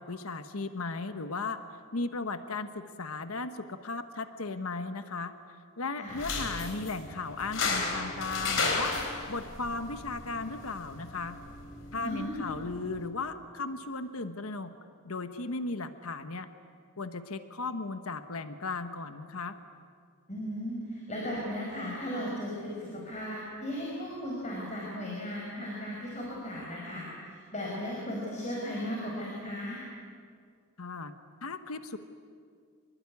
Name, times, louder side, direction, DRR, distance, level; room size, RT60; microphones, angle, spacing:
voice 1, 0.0-1.6 1.9-5.3 5.8-8.9 9.3-11.4 11.9-14.7 15.0-16.5 17.0-19.6 30.8-31.1 31.4-32.0, left 3 dB, 80° left, 10 dB, 1.2 m, -36 dB
sound 1, 6.1-13.1, left 4 dB, 60° left, 3.6 m, -35 dB
voice 2, 12.0-12.4 20.3-29.8, equal, 30° left, -3 dB, 5.2 m, -36 dB
26.0 x 21.5 x 9.7 m, 2.1 s
head